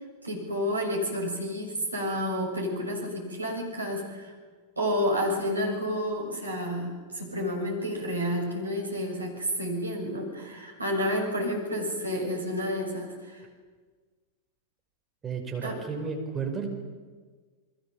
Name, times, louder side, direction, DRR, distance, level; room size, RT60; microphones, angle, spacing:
voice 1, 0.2-4.3 4.8-13.4 15.6-15.8, equal, 80° right, 1 dB, 6.6 m, -30 dB
voice 2, 15.2-16.7, right 5 dB, 20° right, 3 dB, 5.4 m, -32 dB
29.5 x 22.0 x 7.4 m, 1.5 s
figure-of-eight pair, 90°, 0 cm